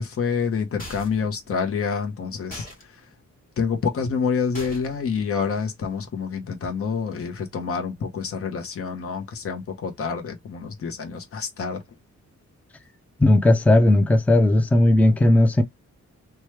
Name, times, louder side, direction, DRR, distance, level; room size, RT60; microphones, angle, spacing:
voice 1, 0.0-2.7 3.6-11.8, left 5 dB, 50° left, 0.9 m, -27 dB
sound 1, 0.8-1.3 2.5-2.8 4.5-5.0, left 1 dB, 30° left, 1.3 m, -40 dB
voice 2, 13.2-15.6, left 1 dB, 5° left, 0.4 m, -16 dB
3.0 x 2.3 x 3.1 m
cardioid pair, 105°, 29 cm